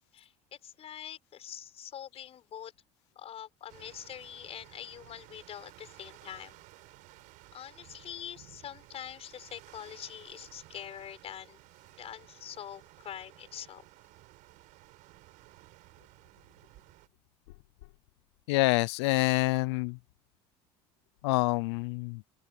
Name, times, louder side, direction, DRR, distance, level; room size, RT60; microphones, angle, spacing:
voice 1, 0.1-2.7 3.2-6.6 7.5-11.6 12.0-13.8, left 10 dB, 45° left, 7.0 m, -44 dB
sound 1, 3.7-17.1, right 20 dB, 70° right, 5.9 m, -56 dB
voice 2, 18.5-20.0 21.2-22.2, left 23 dB, 90° left, 0.6 m, -27 dB
open air
supercardioid pair, 100°, 14 cm